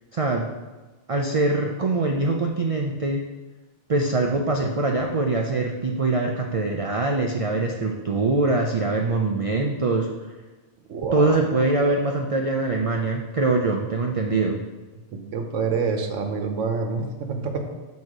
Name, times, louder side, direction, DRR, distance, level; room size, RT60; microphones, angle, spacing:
voice 1, 0.1-0.5 1.1-3.2 3.9-10.1 11.1-14.6, right 3 dB, 60° right, 2 dB, 0.3 m, -23 dB
voice 2, 10.9-11.4 11.8-12.0 15.3-17.6, right 4 dB, 90° right, 4 dB, 1.2 m, -27 dB
6.3 x 4.1 x 4.9 m, 1.2 s
omnidirectional pair, 1.2 m